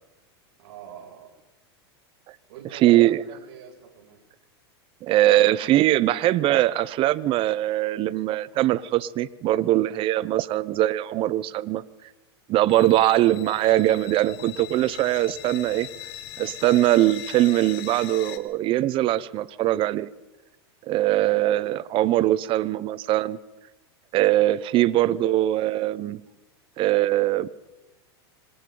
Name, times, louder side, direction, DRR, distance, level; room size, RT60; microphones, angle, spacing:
voice 1, 0.6-1.3 2.5-4.2 13.0-13.2 21.1-21.5, right 8 dB, 65° right, 6.9 m, -45 dB
voice 2, 2.8-3.2 5.0-11.8 12.5-15.9 16.4-20.1 20.9-23.4 24.1-26.2 26.8-27.5, right 14 dB, 40° right, 0.8 m, -21 dB
pauled bridge Horror Texture, 12.7-18.4, left 13 dB, 65° left, 1.8 m, -40 dB
26.0 x 25.0 x 4.0 m
hypercardioid pair, 120°, 14 cm